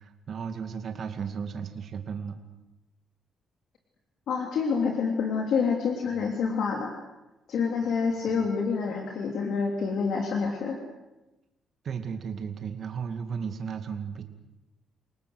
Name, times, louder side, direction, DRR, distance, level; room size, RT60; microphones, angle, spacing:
voice 1, 0.0-2.4 6.1-6.3 8.3-8.5 11.8-14.2, right 6 dB, 55° right, 6 dB, 2.3 m, -35 dB
voice 2, 4.3-6.9 7.5-10.8, left 5 dB, 70° left, 2 dB, 3.2 m, -27 dB
29.5 x 19.0 x 8.1 m, 1.0 s
cardioid pair, 90°, 0 cm